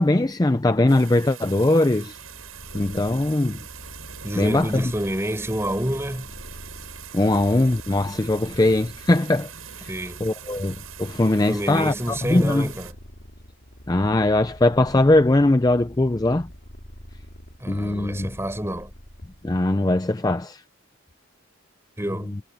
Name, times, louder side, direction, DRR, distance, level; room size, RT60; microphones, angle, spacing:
voice 1, 0.0-2.2 2.7-3.6 4.4-4.9 7.1-9.5 9.8-9.9 10.2-12.7 13.9-16.5 17.7-18.3 19.4-20.6, left 2 dB, 15° left, 0.4 m, -20 dB
sound 1, 0.9-12.9, right 9 dB, 80° right, 7.9 m, -42 dB
Purr, 2.0-19.7, equal, 50° left, 4.9 m, -45 dB
voice 2, 4.2-6.3 9.9-10.2 11.5-12.9 17.6-18.9 22.0-22.4, equal, 10° right, 6.1 m, -28 dB
head